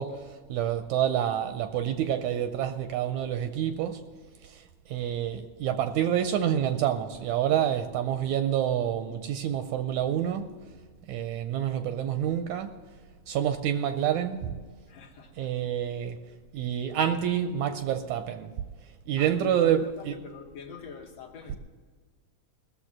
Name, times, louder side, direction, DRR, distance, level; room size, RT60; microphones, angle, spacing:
voice 1, 0.0-4.1 4.4-10.6 11.1-12.8 13.3-14.6 15.4-16.2 16.5-20.2 21.5-21.6, right 10 dB, 80° right, 1.8 m, -28 dB
voice 2, 14.9-15.5 19.2-21.6, left 6 dB, 60° left, 2.0 m, -45 dB
18.0 x 7.0 x 7.4 m
omnidirectional pair, 3.7 m